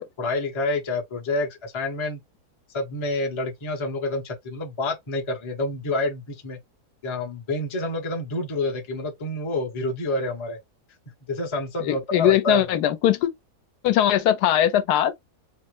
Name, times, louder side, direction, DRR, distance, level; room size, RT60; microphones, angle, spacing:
voice 1, 0.2-2.2 2.7-6.6 7.0-10.6 11.3-12.7, left 2 dB, 30° left, 0.5 m, -28 dB
voice 2, 11.8-13.3 13.8-15.1, left 11 dB, 80° left, 1.1 m, -20 dB
4.1 x 2.0 x 3.1 m
omnidirectional pair, 1.7 m